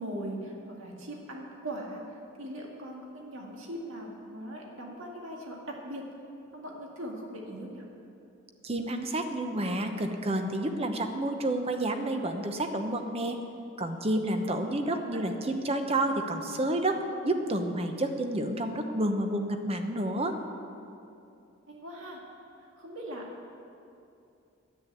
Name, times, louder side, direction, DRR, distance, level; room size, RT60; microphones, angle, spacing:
voice 1, 0.0-6.1 6.5-7.9 14.9-15.2 21.7-22.2 22.8-23.5, right 1 dB, 70° right, -1 dB, 2.0 m, -40 dB
voice 2, 8.6-13.4 13.8-20.4, right 1 dB, 30° right, 6 dB, 0.9 m, -30 dB
10.0 x 8.4 x 8.7 m, 2.7 s
head